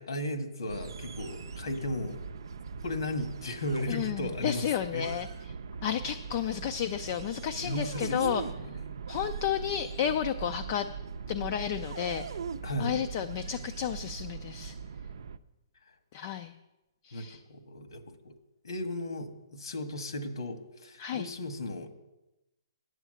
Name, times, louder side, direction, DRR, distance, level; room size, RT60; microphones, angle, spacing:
voice 1, 0.0-2.2 2.8-4.6 4.9-5.1 7.5-8.9 12.6-13.0 16.2-16.3 17.1-18.3 18.6-21.9, left 1 dB, 80° left, 7 dB, 1.7 m, -36 dB
sound 1, 0.7-15.4, right 6 dB, 65° right, 0.5 m, -40 dB
voice 2, 3.9-5.3 5.8-8.4 9.1-10.9 11.3-12.3 12.8-14.7 16.1-16.5 17.0-17.4 21.0-21.3, left 9 dB, 30° left, 7 dB, 0.4 m, -32 dB
9.1 x 7.3 x 7.8 m, 0.97 s
hypercardioid pair, 170°, 2 cm